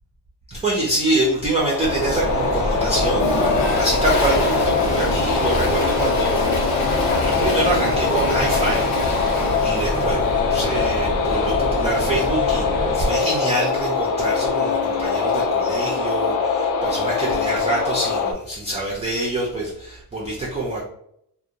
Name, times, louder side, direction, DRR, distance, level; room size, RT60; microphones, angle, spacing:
voice 1, 0.5-6.4 6.9-10.2 10.5-20.8, right 2 dB, 15° right, -4 dB, 0.3 m, -25 dB
sound 1, 1.6-18.3, left 5 dB, 55° left, 0.5 m, -23 dB
sound 2, 1.8-13.0, equal, 20° left, 0.7 m, -27 dB
Toilet flush, 3.1-10.4, left 2 dB, 80° left, 0.8 m, -28 dB
2.4 x 2.1 x 2.8 m, 0.73 s
cardioid pair, 160°, 42 cm